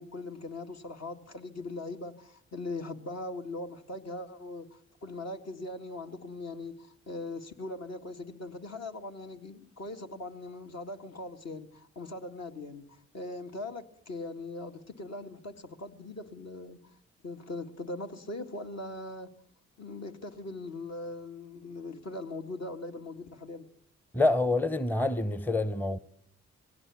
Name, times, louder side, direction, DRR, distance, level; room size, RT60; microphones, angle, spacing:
voice 1, 0.0-12.8 13.1-16.8 17.2-19.3 19.8-23.7, left 2 dB, 60° left, 2.1 m, -40 dB
voice 2, 24.1-26.0, left 2 dB, 5° left, 0.8 m, -27 dB
21.0 x 17.0 x 8.7 m
supercardioid pair, 55°, 30 cm